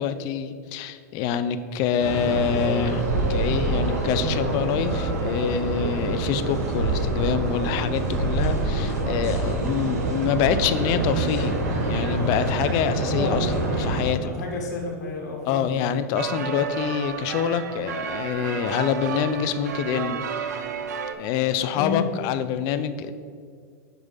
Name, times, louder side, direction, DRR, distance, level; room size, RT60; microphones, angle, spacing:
voice 1, 0.0-3.0 3.3-11.6 11.9-14.3 15.5-20.5 21.2-23.1, left 8 dB, 45° left, 12 dB, 0.4 m, -26 dB
sound 1, 2.0-14.1, right 2 dB, 70° right, 1.5 m, -26 dB
voice 2, 14.2-15.7 21.7-22.1, left 4 dB, 85° left, 0 dB, 1.5 m, -31 dB
sound 2, 16.2-21.1, right 6 dB, 85° right, 0.5 m, -31 dB
5.3 x 4.6 x 5.6 m, 2.1 s
hypercardioid pair, 125°, 9 cm